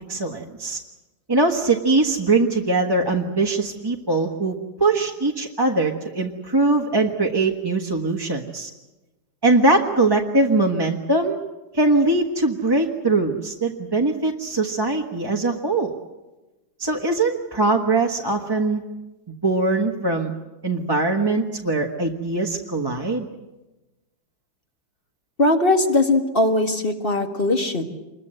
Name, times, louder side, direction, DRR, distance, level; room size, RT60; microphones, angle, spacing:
voice 1, 0.1-0.8 1.3-8.7 9.4-11.4 11.7-15.9 16.8-18.8 19.4-20.3 20.6-23.3, right 2 dB, 15° right, 0 dB, 1.1 m, -21 dB
voice 2, 25.4-27.8, left 2 dB, 30° left, 5 dB, 1.8 m, -20 dB
25.5 x 21.5 x 7.9 m, 1.1 s
omnidirectional pair, 2.1 m